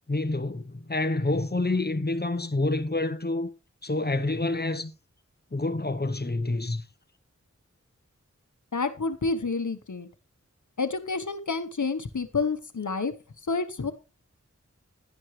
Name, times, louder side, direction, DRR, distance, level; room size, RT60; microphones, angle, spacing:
voice 1, 0.1-3.5 3.8-4.9 5.5-6.8, left 2 dB, 35° left, 0.9 m, -28 dB
voice 2, 8.7-10.1 10.8-13.1 13.5-13.9, left 4 dB, 85° left, 1.1 m, -29 dB
10.5 x 10.5 x 3.2 m
wide cardioid pair, 40°, 29 cm